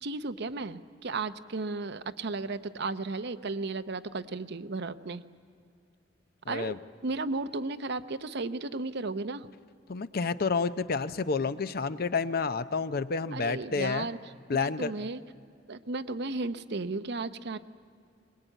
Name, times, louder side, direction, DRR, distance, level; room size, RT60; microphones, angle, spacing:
voice 1, 0.0-5.2 6.5-6.8 7.0-9.5 13.3-14.2 14.5-15.2 15.7-17.6, right 3 dB, 60° right, 11 dB, 0.8 m, -34 dB
voice 2, 6.5-6.8 9.9-14.1 14.5-14.9, left 4 dB, 55° left, 13 dB, 0.7 m, -29 dB
23.0 x 20.5 x 9.1 m, 2.3 s
head